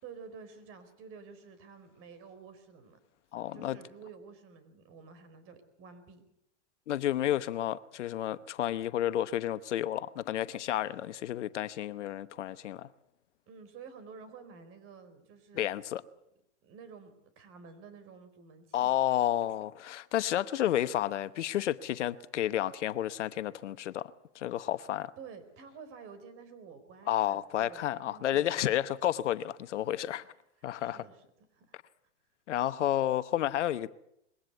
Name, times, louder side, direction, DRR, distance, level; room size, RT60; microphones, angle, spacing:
voice 1, 0.0-3.0 3.5-6.2 13.5-15.7 16.6-19.0 24.6-24.7 25.2-28.8 30.6-31.2 31.5-31.8, right 5 dB, 35° right, 4.2 m, -51 dB
voice 2, 3.3-3.8 6.9-12.9 15.5-16.0 18.7-25.1 27.1-30.2 30.6-31.0 32.5-33.9, left 12 dB, 75° left, 1.1 m, -31 dB
21.5 x 17.5 x 8.3 m
hypercardioid pair, 125°, 36 cm